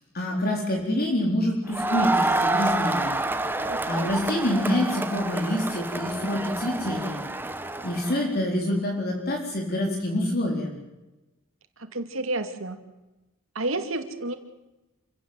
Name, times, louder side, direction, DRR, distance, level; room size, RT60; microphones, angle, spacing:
voice 1, 0.1-3.2 3.9-7.2 7.8-10.8, left 1 dB, 50° left, 0 dB, 4.0 m, -26 dB
Crowd, 1.7-8.3, right 2 dB, 10° right, 1.1 m, -28 dB
voice 2, 3.7-4.1 11.8-12.8 13.5-14.3, right 2 dB, 70° right, 6 dB, 2.5 m, -30 dB
27.5 x 16.5 x 7.8 m, 1.0 s
head